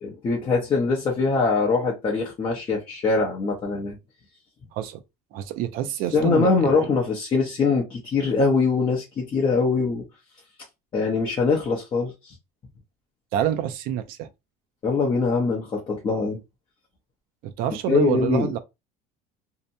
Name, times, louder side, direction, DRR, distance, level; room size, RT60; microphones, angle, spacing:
voice 1, 0.0-4.0 6.1-10.1 10.9-12.3 14.8-16.4 17.9-18.5, left 4 dB, 30° left, 0.7 m, -23 dB
voice 2, 4.7-5.0 5.3-6.9 13.3-14.3 17.4-18.6, right 10 dB, 65° right, 0.5 m, -27 dB
2.8 x 2.1 x 2.6 m
cardioid pair, 135°, 16 cm